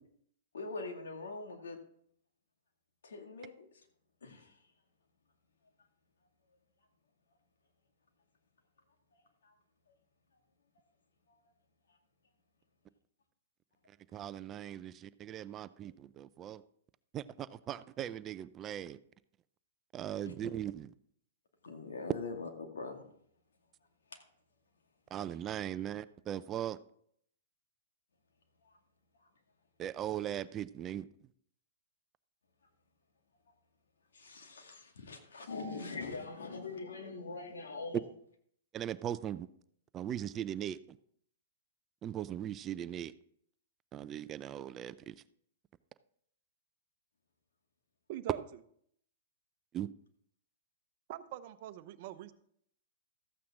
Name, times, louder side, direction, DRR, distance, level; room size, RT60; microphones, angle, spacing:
voice 1, 0.5-1.8 3.0-3.7 4.2-4.6 9.1-9.5 11.3-11.4 20.3-20.4 21.6-23.0 24.1-24.2 28.6-28.7 34.1-38.1, left 3 dB, 85° left, 2.2 m, -43 dB
voice 2, 14.1-16.6 17.1-19.0 19.9-20.9 25.1-26.8 29.8-31.1 38.7-39.5 39.9-40.8 42.0-43.1 43.9-45.1 49.7-49.9, right 10 dB, 25° right, 0.4 m, -39 dB
voice 3, 48.1-48.4 51.1-52.3, right 12 dB, 55° right, 0.8 m, -43 dB
14.0 x 8.6 x 3.7 m
hypercardioid pair, 130°, 0 cm